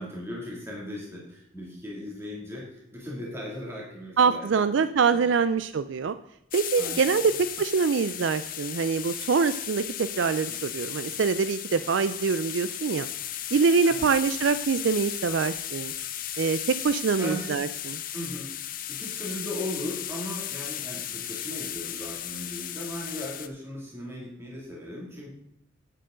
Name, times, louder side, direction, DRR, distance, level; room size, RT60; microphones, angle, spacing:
voice 1, 0.0-4.9 5.1-5.2 6.8-7.3 10.5-10.6 13.8-14.1 17.2-17.5 18.1-18.5 19.0-25.3, left 1 dB, 10° right, -4 dB, 2.4 m, -37 dB
voice 2, 4.2-6.2 6.5-13.1 13.5-15.9 16.4-16.6 16.8-18.0, right 5 dB, 65° right, 12 dB, 0.4 m, -24 dB
sound 1, 6.5-23.5, left 11 dB, 45° left, 0.7 m, -35 dB
11.5 x 9.2 x 3.8 m, 0.79 s
head